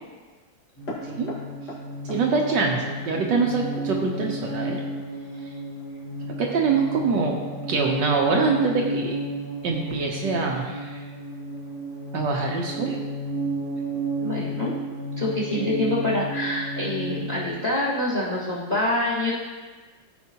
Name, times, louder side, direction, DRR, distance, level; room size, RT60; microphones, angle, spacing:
sound 1, 0.8-17.5, right 1 dB, 55° left, 2.2 m, -32 dB
voice 1, 2.1-4.8 6.4-7.4 7.7-9.2 9.6-11.0 12.1-13.0, right 4 dB, 70° right, 0 dB, 1.4 m, -24 dB
voice 2, 14.2-14.7 15.2-19.3, left 1 dB, 20° left, -7 dB, 1.7 m, -26 dB
14.0 x 5.2 x 2.9 m, 1.4 s
omnidirectional pair, 2.2 m